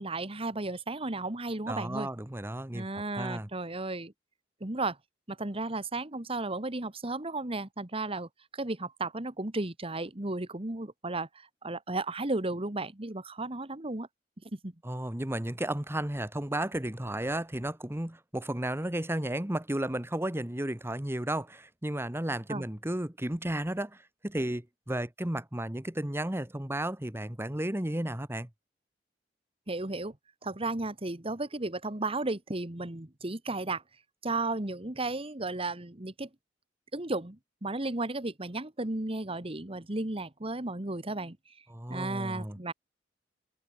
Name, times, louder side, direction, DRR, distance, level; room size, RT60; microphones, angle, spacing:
voice 1, 0.0-2.1 2.7-4.1 4.6-5.0 5.3-14.1 14.6-14.7 22.5-22.6 29.7-30.1 30.4-33.8 34.2-36.3 36.9-41.5 41.9-42.7, right 2 dB, 35° right, 1.7 m, -34 dB
voice 2, 1.7-3.5 14.8-28.5 41.7-42.6, right 1 dB, 15° right, 1.3 m, -33 dB
head